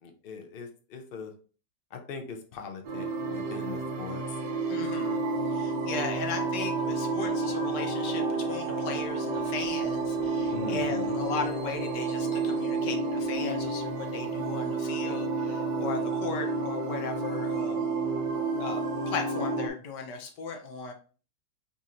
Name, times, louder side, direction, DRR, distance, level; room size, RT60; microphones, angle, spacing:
voice 1, 0.0-1.3 1.9-4.4 10.5-11.2, left 5 dB, 55° left, 5 dB, 0.6 m, -40 dB
sound 1, 2.8-19.7, right 3 dB, 85° right, 1.5 m, -30 dB
voice 2, 4.7-5.2 5.5-17.9 18.6-20.9, left 4 dB, 80° left, 4 dB, 1.5 m, -37 dB
4.2 x 4.1 x 2.5 m, 0.38 s
omnidirectional pair, 1.8 m